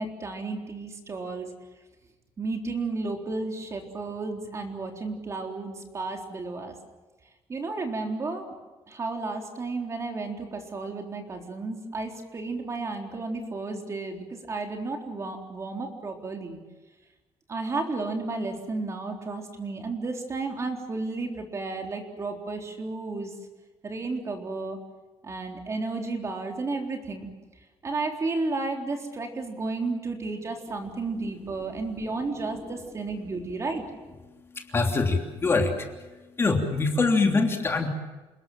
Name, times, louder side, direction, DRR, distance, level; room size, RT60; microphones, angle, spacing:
voice 1, 0.0-1.5 2.4-6.7 7.5-8.5 8.9-16.6 17.5-23.3 23.8-24.8 25.2-27.3 27.8-33.8, right 3 dB, 30° right, 3 dB, 3.8 m, -32 dB
voice 2, 34.5-35.9 36.4-37.9, left 3 dB, 25° left, 3 dB, 3.1 m, -24 dB
29.0 x 20.5 x 7.5 m, 1.2 s
cardioid pair, 135°, 10 cm